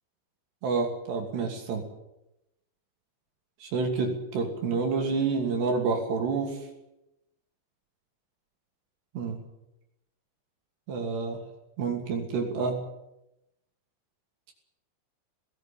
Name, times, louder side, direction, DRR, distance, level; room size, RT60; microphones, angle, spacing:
voice 1, 0.6-1.8 3.6-6.6 9.1-9.4 10.9-11.4 11.8-12.8, right 4 dB, 60° right, 3 dB, 4.7 m, -28 dB
19.0 x 16.5 x 8.9 m, 0.89 s
omnidirectional pair, 5.7 m